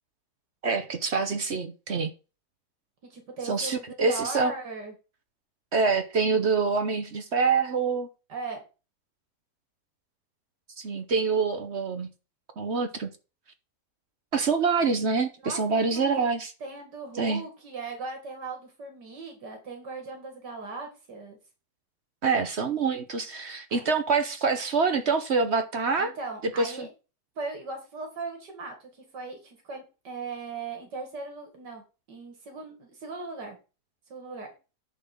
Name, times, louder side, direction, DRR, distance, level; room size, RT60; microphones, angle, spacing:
voice 1, 0.6-2.1 3.4-4.5 5.7-8.1 10.8-12.1 12.6-13.1 14.3-16.5 17.2-17.4 22.2-26.1 26.4-26.9, right 4 dB, 45° right, 1.0 m, -26 dB
voice 2, 3.1-4.9 8.3-8.6 15.4-16.3 16.6-21.4 23.7-23.8 26.0-26.9 27.4-33.6 34.1-34.5, right 4 dB, 85° right, 2.6 m, -38 dB
10.0 x 3.9 x 7.0 m
omnidirectional pair, 1.8 m